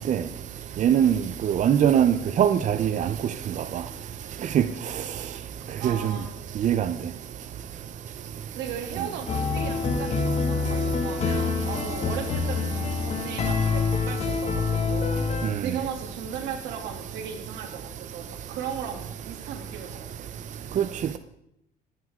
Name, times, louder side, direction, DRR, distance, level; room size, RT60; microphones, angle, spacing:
voice 1, 0.8-1.1 1.4-3.1 4.5-4.6 5.8-6.0 6.6-6.9 20.8-20.9, right 9 dB, 45° right, 0.7 m, -21 dB
voice 2, 5.8-6.3 8.5-15.2 15.6-20.3, right 7 dB, 90° right, 2.8 m, -37 dB
sound 1, 9.3-15.5, left 4 dB, 40° left, 2.3 m, -26 dB
20.5 x 9.6 x 3.7 m
cardioid pair, 110°, 17 cm